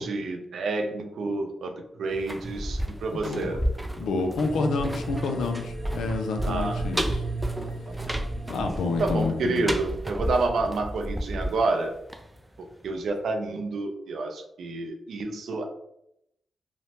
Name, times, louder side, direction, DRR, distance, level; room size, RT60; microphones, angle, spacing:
voice 1, 0.0-3.6 6.4-6.9 7.9-8.1 8.8-12.0 12.8-15.6, right 3 dB, 80° right, 4 dB, 0.4 m, -29 dB
sound 1, 2.1-12.9 13.2-13.3, equal, 10° right, 0.3 m, -32 dB
voice 2, 3.1-3.6 4.0-7.2 8.5-9.7, left 3 dB, 90° left, 5 dB, 0.4 m, -29 dB
sound 2, 4.4-9.9, right 3 dB, 30° right, 0.8 m, -36 dB
3.0 x 2.1 x 2.8 m, 0.79 s
cardioid pair, 60°, 0 cm